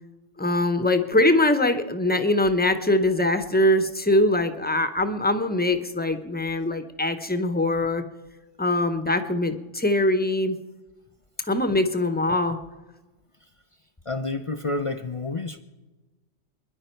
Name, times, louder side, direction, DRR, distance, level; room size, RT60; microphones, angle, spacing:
voice 1, 0.4-8.0 8.6-10.6 11.5-12.6, left 1 dB, 10° left, 8 dB, 0.7 m, -22 dB
voice 2, 14.0-15.6, left 3 dB, 40° left, 8 dB, 0.4 m, -29 dB
27.5 x 10.5 x 4.5 m, 1.2 s
omnidirectional pair, 1.3 m